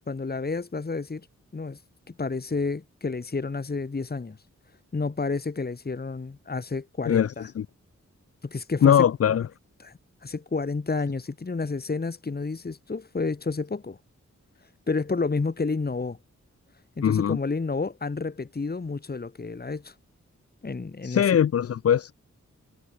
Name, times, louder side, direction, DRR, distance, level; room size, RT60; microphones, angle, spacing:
voice 1, 0.1-1.3 1.5-1.8 2.1-4.4 4.9-7.5 8.4-9.1 9.8-9.9 10.2-14.0 14.9-16.2 17.0-19.9 20.6-21.4, left 4 dB, 35° left, 2.7 m, -30 dB
voice 2, 8.8-9.4 17.0-17.4 21.0-22.1, left 9 dB, 55° left, 0.5 m, -21 dB
wide cardioid pair, 165°, 29 cm